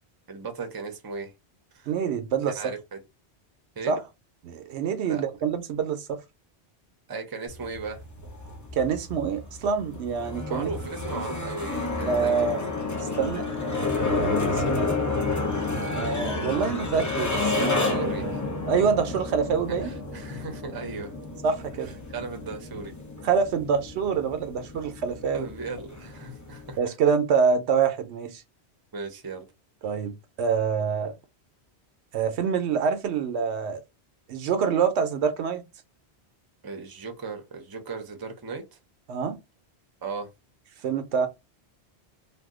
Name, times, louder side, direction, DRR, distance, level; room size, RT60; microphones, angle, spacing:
voice 1, 0.3-1.3 1.7-1.9 2.5-3.0 3.8-3.9 5.0-5.2 7.1-8.0 10.5-12.6 17.6-18.4 19.8-21.2 22.1-22.9 25.3-26.9 28.9-29.5 36.6-38.6 40.0-40.3, right 4 dB, 25° right, 0.5 m, -36 dB
voice 2, 1.9-2.7 3.9-4.0 4.4-6.2 8.8-10.7 12.1-12.6 13.0-13.7 13.9-15.1 15.9-18.0 18.7-19.9 21.4-21.9 23.2-25.5 26.8-28.4 29.8-31.1 32.1-33.8 34.3-35.6 39.1-39.4 40.8-41.3, right 6 dB, 80° right, 0.9 m, -26 dB
sound 1, 7.5-26.8, left 3 dB, 20° left, 0.5 m, -30 dB
2.6 x 2.2 x 3.5 m
omnidirectional pair, 1.1 m